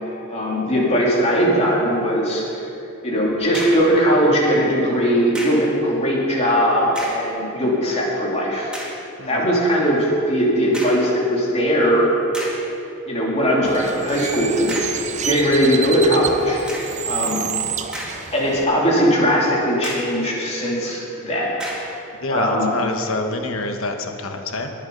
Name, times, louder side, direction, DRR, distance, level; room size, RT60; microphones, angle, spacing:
voice 1, 0.3-2.4 3.0-8.7 9.3-12.1 13.1-16.6 17.1-17.4 18.3-21.5 22.3-22.7, equal, 30° left, -4 dB, 3.0 m, -19 dB
sound 1, 3.4-3.9 5.3-5.7 6.8-7.3 7.9-8.0 8.7-9.0 10.7-11.1 11.8-11.9 12.3-12.7 14.7-15.1 16.7-17.0 17.7-18.5 18.9-19.0 19.8-20.2 21.6-22.0, equal, 5° right, 2.3 m, -32 dB
Bird, 13.6-18.6, right 8 dB, 35° right, 0.6 m, -29 dB
voice 2, 22.2-24.7, left 2 dB, 70° left, 5 dB, 1.2 m, -26 dB
20.5 x 7.2 x 5.4 m, 2.8 s
head